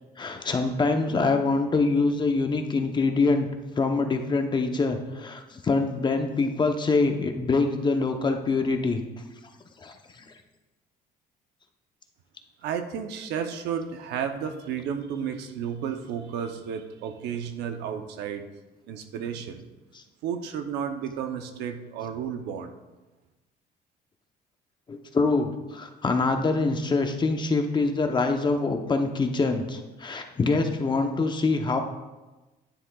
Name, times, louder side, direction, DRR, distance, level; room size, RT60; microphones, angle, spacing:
voice 1, 0.2-3.5 3.8-9.0 9.8-10.3 24.9-31.8, left 3 dB, 25° left, 5 dB, 0.8 m, -25 dB
voice 2, 12.6-18.5 18.9-19.7 20.2-22.7, right 7 dB, 85° right, 7 dB, 0.8 m, -32 dB
10.0 x 9.7 x 2.4 m, 1.1 s
cardioid pair, 110°, 17 cm